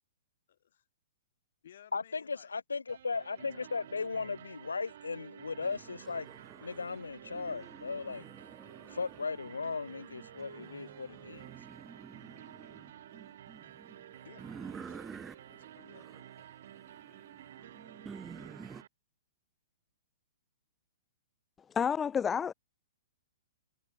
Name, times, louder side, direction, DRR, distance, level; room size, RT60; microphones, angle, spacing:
voice 1, 0.5-0.9 1.6-2.5 3.4-4.4 14.2-14.4 14.8-15.2 15.5-16.5, left 10 dB, 65° left, 5.8 m, -58 dB
voice 2, 1.9-6.3 6.6-8.2 8.9-11.4, left 4 dB, 85° left, 1.1 m, -37 dB
sound 1, 2.9-18.9, right 11 dB, 60° right, 2.3 m, -52 dB
sound 2, 5.6-18.8, right 6 dB, 15° right, 3.6 m, -51 dB
voice 3, 21.7-22.5, left 7 dB, 15° left, 0.5 m, -29 dB
hypercardioid pair, 115°, 0 cm